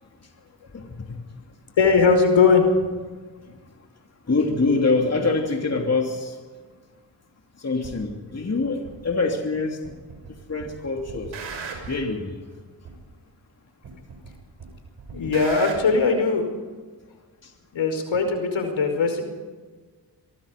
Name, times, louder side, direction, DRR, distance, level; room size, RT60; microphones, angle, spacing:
voice 1, 0.7-1.2 4.3-6.4 7.6-9.8 10.5-11.3 11.9-12.4 17.4-17.5, left 3 dB, 35° left, 2 dB, 3.0 m, -25 dB
voice 2, 1.8-2.7 15.1-16.4 17.7-19.2, left 4 dB, 70° left, 6 dB, 5.2 m, -19 dB
sound 1, 7.8-8.0 8.8-8.9 9.8-10.3 10.6-12.1 12.8-12.9 13.8-14.3 14.6-15.8, right 5 dB, 75° right, 6.1 m, -37 dB
24.0 x 23.0 x 5.3 m, 1.4 s
cardioid pair, 60°, 47 cm